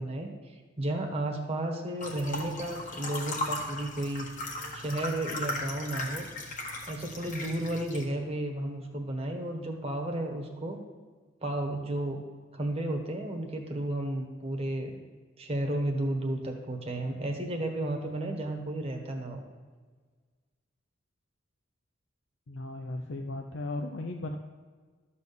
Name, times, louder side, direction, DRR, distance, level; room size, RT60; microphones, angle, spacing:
voice 1, 0.0-4.3 4.7-6.3 6.9-10.8 11.4-12.2 12.5-15.0 15.4-19.4, right 1 dB, 30° right, 2 dB, 1.3 m, -33 dB
sound 1, 2.0-8.1, left 1 dB, 40° left, 1.5 m, -37 dB
voice 2, 22.5-24.3, left 2 dB, 80° left, 4 dB, 0.6 m, -36 dB
12.5 x 4.3 x 6.9 m, 1.5 s
head